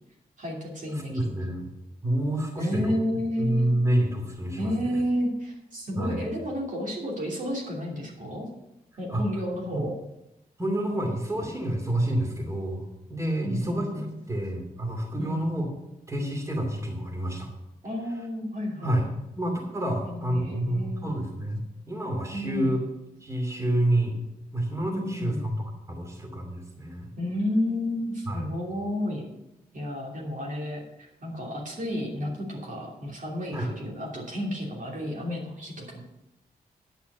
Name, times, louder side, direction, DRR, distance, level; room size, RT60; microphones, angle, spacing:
voice 1, 0.4-1.3 2.6-3.7 4.6-8.5 9.0-9.9 13.4-14.1 15.2-15.4 17.8-19.0 20.1-21.2 22.3-22.8 24.9-25.4 27.2-29.3 29.7-36.0, left 1 dB, 55° right, -2 dB, 2.8 m, -31 dB
voice 2, 0.9-1.7 2.0-3.0 3.4-5.0 6.0-6.2 9.1-9.2 9.7-9.8 10.6-15.7 16.1-17.5 18.8-19.1 19.4-22.8 23.2-24.2 24.5-27.1 28.3-28.4 33.5-33.7, right 1 dB, 20° right, 1 dB, 2.6 m, -28 dB
9.3 x 5.7 x 6.8 m, 0.93 s
cardioid pair, 75°, 16 cm